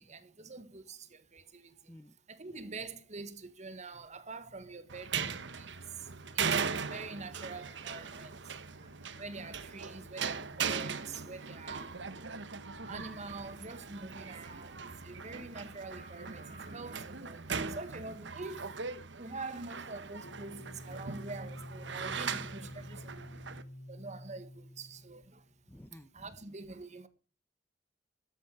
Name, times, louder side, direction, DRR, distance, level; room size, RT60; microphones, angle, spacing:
voice 1, 0.0-1.7 2.3-8.4 9.2-11.9 12.9-18.8 19.2-23.4 23.9-25.4 26.1-27.1, right 3 dB, 40° right, 1.5 m, -45 dB
sound 1, 4.9-23.6, right 6 dB, 85° right, 1.2 m, -39 dB
sound 2, 20.2-25.4, left 1 dB, 45° left, 2.9 m, -48 dB
voice 2, 25.7-26.3, left 1 dB, 10° left, 0.8 m, -54 dB
13.5 x 9.9 x 4.9 m
head